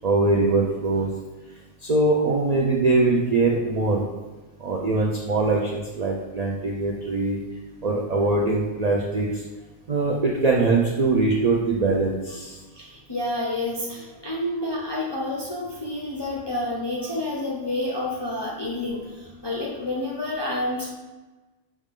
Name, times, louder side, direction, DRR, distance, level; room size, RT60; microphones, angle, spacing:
voice 1, 0.0-1.1 1.8-4.0 4.6-7.4 7.8-9.4 9.9-12.6, right 3 dB, 90° right, -2 dB, 0.3 m, -22 dB
voice 2, 12.7-20.9, left 1 dB, 45° left, -5 dB, 0.3 m, -29 dB
5.4 x 2.4 x 3.6 m, 1.2 s
omnidirectional pair, 1.4 m